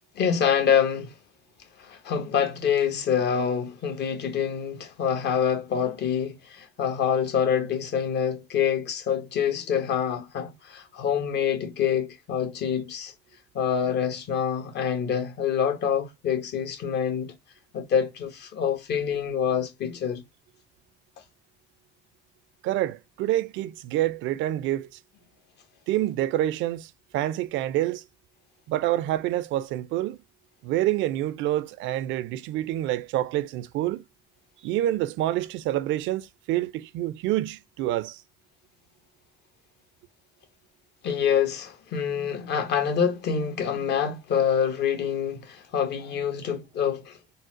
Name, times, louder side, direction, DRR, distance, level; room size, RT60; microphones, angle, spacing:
voice 1, 0.1-1.1 1.8-13.1 13.5-17.3 17.7-20.2 41.0-47.2, left 8 dB, 60° left, 1.1 m, -26 dB
voice 2, 22.6-24.9 25.9-28.0 28.7-30.2 30.6-34.0 34.6-38.2, right 14 dB, 75° right, 0.4 m, -27 dB
4.0 x 2.0 x 2.5 m
cardioid pair, 95°, 20 cm